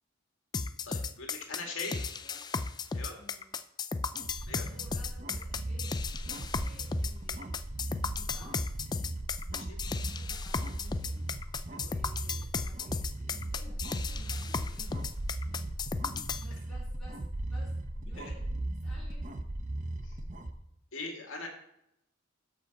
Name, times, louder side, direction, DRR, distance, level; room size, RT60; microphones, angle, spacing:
sound 1, 0.5-16.5, left 4 dB, 20° left, 0.3 m, -35 dB
voice 1, 0.8-2.0 2.9-3.2 4.5-4.7 9.5-9.8 11.7-11.9 18.2-18.3 20.0-20.2 20.9-21.5, left 3 dB, 70° left, 1 dB, 2.2 m, -41 dB
voice 2, 1.4-2.4 3.2-3.5 4.7-7.6 8.1-8.7 9.9-11.2 11.8-15.1 16.4-17.2 17.5-18.5 18.8-19.3 20.0-20.1, left 1 dB, ahead, -10 dB, 3.4 m, -56 dB
sound 2, 4.1-20.5, right 1 dB, 40° right, 0.8 m, -38 dB
12.5 x 5.3 x 4.1 m, 0.78 s
head